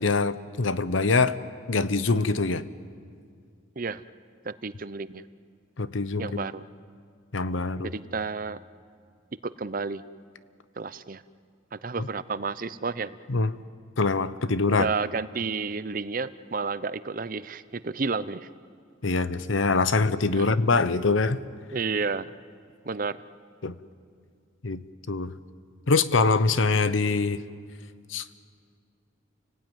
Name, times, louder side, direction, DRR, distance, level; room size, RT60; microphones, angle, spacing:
voice 1, 0.0-1.4 1.7-2.7 5.8-6.4 7.3-7.9 12.0-12.1 13.3-13.5 14.0-14.9 19.0-21.4 23.6-23.8 24.6-25.3 25.9-27.4 28.1-28.2, left 3 dB, 85° left, 14 dB, 0.9 m, -24 dB
voice 2, 4.4-5.2 6.2-6.6 7.9-8.6 9.6-10.0 10.8-11.2 11.7-13.2 14.7-18.5 20.3-20.5 21.7-22.3 22.8-23.2, right 4 dB, 45° right, 15 dB, 0.6 m, -31 dB
29.0 x 18.5 x 9.3 m, 2.2 s
head